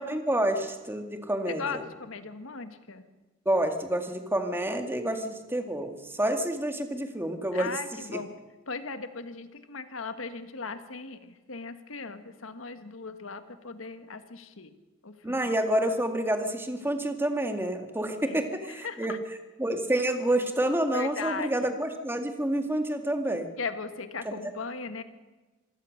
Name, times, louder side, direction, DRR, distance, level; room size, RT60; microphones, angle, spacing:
voice 1, 0.1-1.8 3.5-7.8 8.1-8.2 15.2-19.1 19.6-23.5 24.3-24.4, right 1 dB, 10° right, 6 dB, 2.0 m, -28 dB
voice 2, 1.5-3.0 7.5-8.4 8.7-14.7 15.0-15.5 18.2-19.2 20.9-21.8 23.6-25.0, left 4 dB, 80° left, 9 dB, 1.6 m, -38 dB
26.0 x 16.5 x 6.6 m, 1.2 s
head